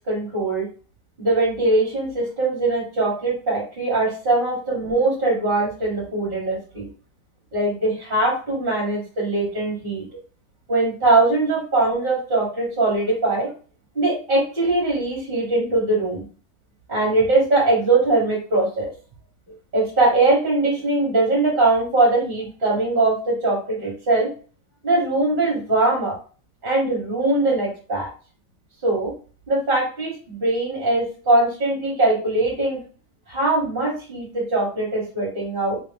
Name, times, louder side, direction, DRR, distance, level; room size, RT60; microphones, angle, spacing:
voice 1, 0.1-0.7 1.2-6.9 7.5-10.0 10.7-13.5 13.9-16.2 16.9-18.9 19.7-24.3 24.8-26.1 26.6-28.1 28.8-29.1 29.5-32.8 33.3-35.8, right 2 dB, 30° right, -3 dB, 1.3 m, -21 dB
3.6 x 2.7 x 3.3 m, 0.39 s
omnidirectional pair, 2.0 m